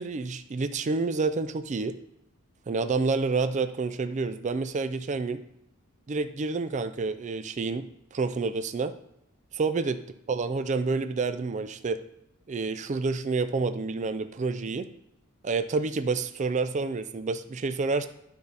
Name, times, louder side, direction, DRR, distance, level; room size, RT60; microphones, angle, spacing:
voice 1, 0.0-1.9 2.7-5.4 6.1-7.8 8.1-8.9 9.5-10.0 10.3-12.0 12.5-14.9 15.4-18.1, right 4 dB, 35° right, 10 dB, 0.4 m, -28 dB
12.0 x 4.0 x 3.4 m, 0.81 s
head